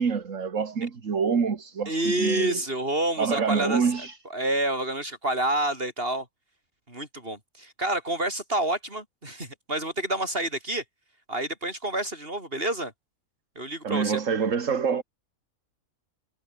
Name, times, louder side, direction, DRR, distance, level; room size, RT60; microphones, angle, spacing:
voice 1, 0.0-2.6 3.2-4.2 13.8-15.0, right 6 dB, 65° right, 2.1 m, -26 dB
voice 2, 1.9-6.3 6.9-10.8 11.3-12.9 13.6-14.2, right 1 dB, 40° right, 7.0 m, -28 dB
omnidirectional pair, 1.5 m